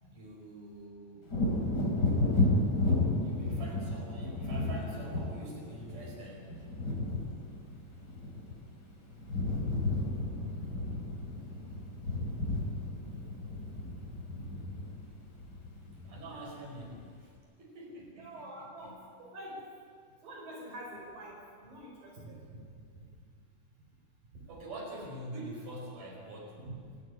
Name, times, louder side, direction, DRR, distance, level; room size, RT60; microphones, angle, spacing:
voice 1, 0.1-1.3 3.2-6.5 16.0-17.3 17.6-19.0 24.5-26.6, right 1 dB, 50° right, -2 dB, 6.5 m, -45 dB
Wind / Thunder, 1.3-8.9 9.1-16.4 16.8-16.9, left 2 dB, 30° left, 3.9 m, -32 dB
voice 2, 9.9-10.2 10.5-10.7 12.1-12.4 13.0-13.2 13.5-13.7 14.3-14.5 14.8-14.9 18.2-18.9 19.3-19.6 20.2-22.6 24.4-24.5 26.6-26.7, right 1 dB, 70° right, -2 dB, 6.5 m, -47 dB
28.0 x 12.5 x 9.6 m, 2.1 s
omnidirectional pair, 4.1 m